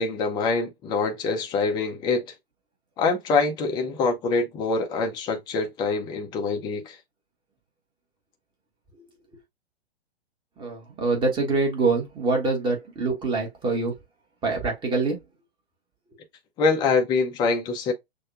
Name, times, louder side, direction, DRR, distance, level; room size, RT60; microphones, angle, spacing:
voice 1, 0.0-2.2 3.0-7.0 16.6-17.9, left 4 dB, 15° left, 0.6 m, -25 dB
voice 2, 10.6-13.9 14.4-15.2, right 3 dB, 15° right, 1.3 m, -25 dB
6.3 x 2.3 x 2.3 m
figure-of-eight pair, 115°, 32 cm